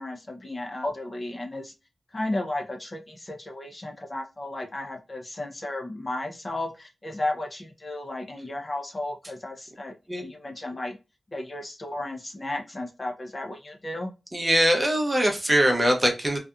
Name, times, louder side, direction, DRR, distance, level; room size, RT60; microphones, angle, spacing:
voice 1, 0.0-1.7 2.1-11.0 11.3-14.1, left 1 dB, 30° left, 2 dB, 0.5 m, -34 dB
voice 2, 14.3-16.4, equal, 20° right, 2 dB, 0.6 m, -22 dB
2.7 x 2.3 x 2.3 m, 0.27 s
wide cardioid pair, 130°, 0 cm